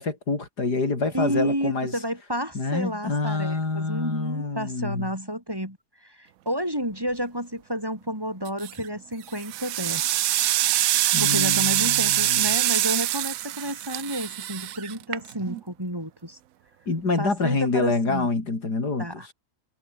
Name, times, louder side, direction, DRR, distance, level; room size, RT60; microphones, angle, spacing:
voice 1, 0.0-1.9 2.5-5.1 11.1-12.6 16.9-19.1, left 3 dB, 80° left, 4.7 m, -27 dB
voice 2, 1.1-10.0 11.2-16.4 17.2-18.3 19.0-19.3, equal, 15° right, 8.0 m, -31 dB
sound 1, 8.5-8.9 9.3-15.6, right 14 dB, 65° right, 1.0 m, -24 dB
omnidirectional pair, 1.7 m